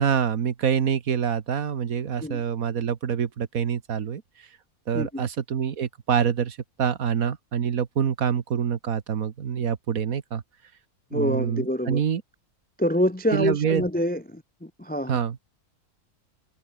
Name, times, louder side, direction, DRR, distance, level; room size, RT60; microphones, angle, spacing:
voice 1, 0.0-4.2 4.9-10.4 11.1-12.2 13.3-13.8 15.1-15.4, right 7 dB, 70° right, 1.7 m, -26 dB
voice 2, 4.9-5.2 11.1-12.0 12.8-15.2, equal, 10° left, 0.4 m, -26 dB
omnidirectional pair, 1.6 m